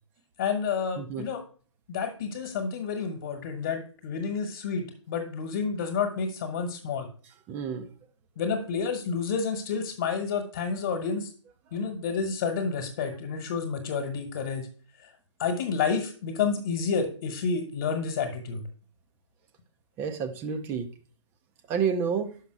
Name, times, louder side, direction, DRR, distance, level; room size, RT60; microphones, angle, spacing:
voice 1, 0.4-1.4 1.9-7.1 8.4-11.3 11.7-14.7 15.0-15.1 15.4-18.6, left 5 dB, 35° left, 2 dB, 1.3 m, -30 dB
voice 2, 7.5-7.9 20.0-20.9 21.7-22.3, right 6 dB, 10° right, 8 dB, 0.5 m, -29 dB
5.9 x 5.6 x 5.8 m, 0.40 s
figure-of-eight pair, 135°, 16 cm